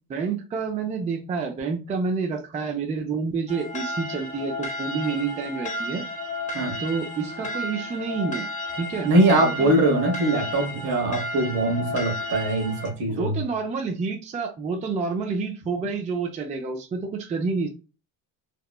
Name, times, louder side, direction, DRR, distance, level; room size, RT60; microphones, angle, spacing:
voice 1, 0.1-6.0 6.8-8.5 8.8-9.8 13.1-17.7, right 4 dB, 20° right, 0.4 m, -29 dB
sound 1, 3.5-12.9, left 1 dB, 20° left, 0.7 m, -33 dB
voice 2, 9.0-13.4, right 2 dB, 70° right, 1.2 m, -22 dB
2.9 x 2.0 x 2.3 m
supercardioid pair, 100°, 40 cm